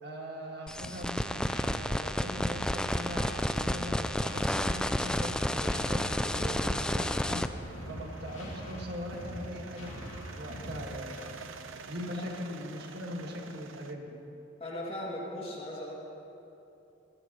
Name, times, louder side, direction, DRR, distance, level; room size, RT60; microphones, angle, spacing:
voice 1, 0.0-7.4 7.9-9.9 10.4-11.2 11.9-14.2, equal, 55° right, 0 dB, 1.9 m, -40 dB
sound 1, 0.7-7.5, left 1 dB, 5° left, 0.3 m, -31 dB
sound 2, 0.8-11.5, equal, 85° left, 2.5 m, -43 dB
sound 3, 5.3-13.9, right 4 dB, 85° right, 0.8 m, -49 dB
voice 2, 14.6-15.9, left 1 dB, 30° left, -4 dB, 2.6 m, -38 dB
22.5 x 16.5 x 3.1 m, 2.9 s
head